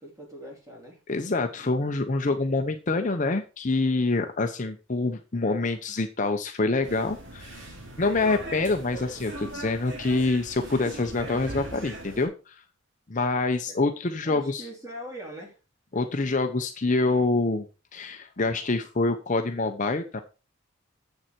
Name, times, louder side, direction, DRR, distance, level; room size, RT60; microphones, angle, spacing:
voice 1, 0.0-1.0 13.7-13.8 14.2-15.6, equal, 15° right, 0 dB, 3.1 m, -41 dB
voice 2, 1.1-7.6 8.0-12.6 13.1-14.6 15.9-17.7 17.9-20.2, left 3 dB, 35° left, 6 dB, 0.7 m, -26 dB
sound 1, 6.8-12.3, right 1 dB, 55° right, 2.9 m, -39 dB
7.7 x 7.2 x 4.4 m, 0.33 s
head